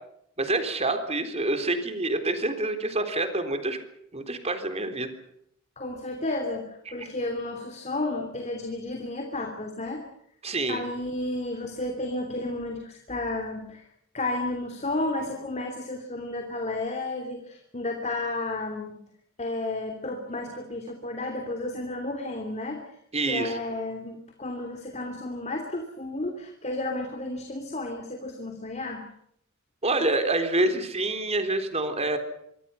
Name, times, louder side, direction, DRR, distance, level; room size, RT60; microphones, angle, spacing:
voice 1, 0.4-3.8 4.1-5.1 7.0-7.1 10.4-10.8 23.1-23.6 29.8-32.2, right 2 dB, 30° right, 8 dB, 3.8 m, -27 dB
voice 2, 5.8-10.0 10.7-13.8 14.1-19.0 19.4-22.8 23.2-29.1, left 2 dB, 35° left, 4 dB, 3.1 m, -32 dB
26.0 x 24.5 x 5.8 m, 0.72 s
head